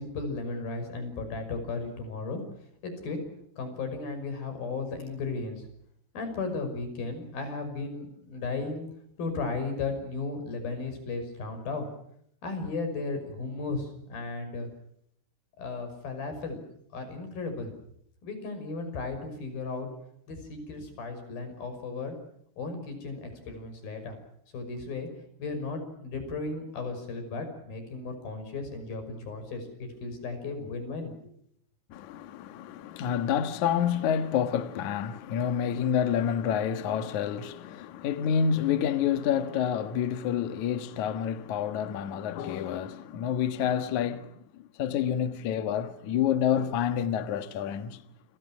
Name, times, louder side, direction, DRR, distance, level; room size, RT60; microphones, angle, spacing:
voice 1, 0.0-2.4 2.8-3.2 3.6-5.7 6.1-8.9 9.2-11.9 12.4-14.7 15.6-16.6 16.9-17.7 18.2-19.9 20.3-22.2 22.6-24.2 24.5-25.1 25.4-31.3, left 3 dB, 45° left, 7.4 m, -35 dB
voice 2, 31.9-44.3 44.8-48.0, left 8 dB, 80° left, 1.7 m, -28 dB
30.0 x 26.0 x 6.2 m
omnidirectional pair, 5.8 m